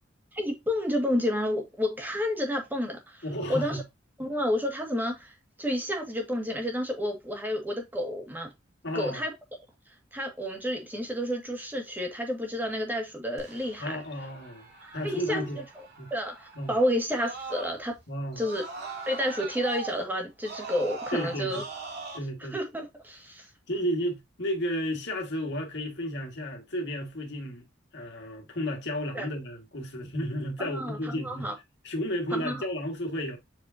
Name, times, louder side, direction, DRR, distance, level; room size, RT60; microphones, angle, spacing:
voice 1, 0.3-3.2 3.5-3.8 4.2-5.3 5.6-8.5 8.9-9.3 10.1-14.0 14.8-15.4 16.1-18.0 18.4-18.6 19.1-21.6 22.5-23.5 29.1-29.3 30.6-31.5 32.3-32.6, equal, 10° right, 2.0 m, -30 dB
voice 2, 3.2-3.8 8.8-9.2 13.8-15.6 16.0-16.1 16.6-16.8 18.1-18.4 21.1-21.6 22.1-22.5 23.7-27.7 27.9-31.5 31.8-33.4, equal, 65° left, 2.1 m, -33 dB
Screaming, 13.4-18.0 18.3-22.2, right 3 dB, 60° right, 2.7 m, -41 dB
7.4 x 4.7 x 2.8 m
head